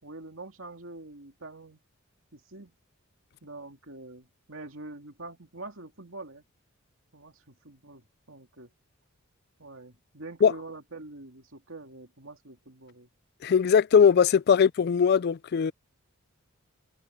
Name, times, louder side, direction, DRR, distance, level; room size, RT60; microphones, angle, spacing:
voice 1, 0.0-1.8 2.3-2.7 3.4-6.4 7.1-8.7 9.6-13.1 14.5-14.7, right 2 dB, 65° right, 2.7 m, -45 dB
voice 2, 13.4-15.7, left 7 dB, 50° left, 0.3 m, -20 dB
head